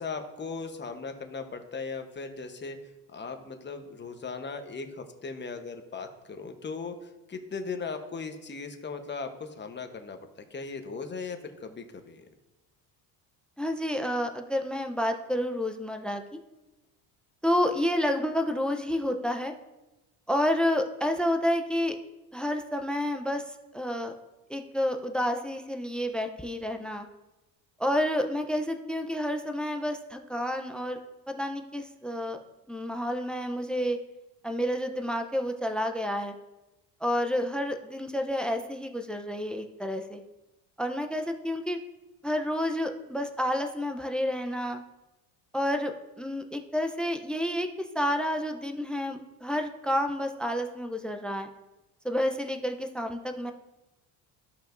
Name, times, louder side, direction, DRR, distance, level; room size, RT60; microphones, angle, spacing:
voice 1, 0.0-2.8 3.1-12.3, left 4 dB, 25° left, 6 dB, 1.0 m, -38 dB
voice 2, 13.6-16.2 17.4-19.5 20.3-22.0 22.3-23.4 23.7-24.1 24.5-27.1 27.8-31.0 31.3-32.4 32.7-34.0 34.4-36.3 37.0-40.2 40.8-41.8 42.2-44.8 45.5-45.9 46.2-51.5 52.0-53.5, equal, ahead, 6 dB, 0.6 m, -29 dB
14.5 x 5.1 x 2.6 m, 1.0 s
cardioid pair, 95°, 41 cm